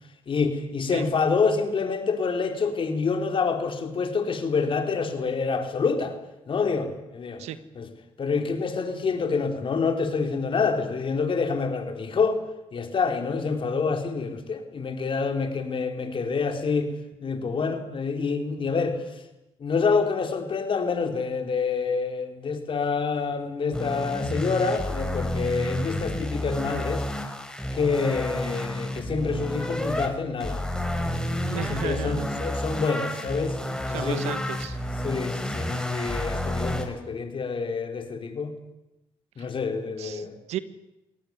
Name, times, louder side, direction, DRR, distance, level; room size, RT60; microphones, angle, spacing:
voice 1, 0.3-6.2 6.5-7.4 7.8-7.9 8.2-12.4 12.7-16.9 17.2-19.2 19.6-27.1 27.7-30.6 31.0-33.6 33.9-34.4 35.0-38.5 39.4-40.4, left 5 dB, 50° left, 6 dB, 4.0 m, -27 dB
sound 1, 23.7-30.1 30.4-36.9, left 1 dB, 5° left, 5.2 m, -30 dB
voice 2, 31.4-32.3 33.9-34.8 40.0-40.6, right 11 dB, 80° right, 14 dB, 1.3 m, -34 dB
22.5 x 18.0 x 9.5 m, 0.94 s
supercardioid pair, 60°, 11 cm